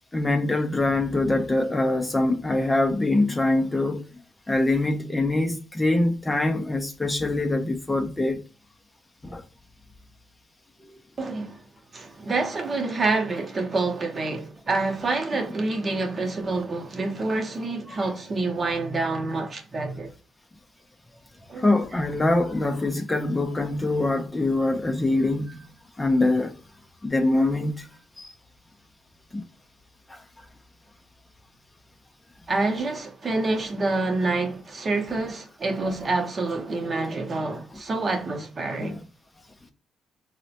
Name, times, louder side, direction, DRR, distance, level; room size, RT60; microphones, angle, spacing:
voice 1, 0.1-4.1 4.5-8.4 9.2-9.4 17.9-18.1 21.6-25.7 26.0-26.5 27.0-27.9 28.2-28.3 29.3-29.4 30.1-30.2 38.7-39.0, left 2 dB, 15° left, 0.4 m, -24 dB
voice 2, 11.2-11.6 11.9-20.1 21.5-21.7 32.5-39.0, right 3 dB, 35° right, 0.7 m, -27 dB
3.9 x 2.1 x 2.7 m
cardioid pair, 90°, 0 cm